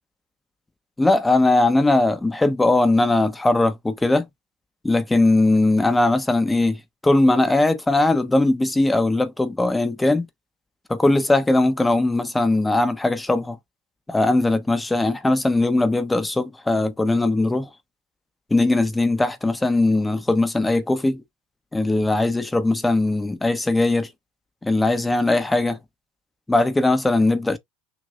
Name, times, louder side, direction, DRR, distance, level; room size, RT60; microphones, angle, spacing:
voice 1, 1.0-4.2 4.8-10.3 10.9-13.6 14.1-17.7 18.5-21.2 21.7-24.1 24.6-25.8 26.5-27.6, left 2 dB, 10° left, 1.0 m, -20 dB
6.3 x 2.9 x 2.6 m
supercardioid pair, 105°, 0 cm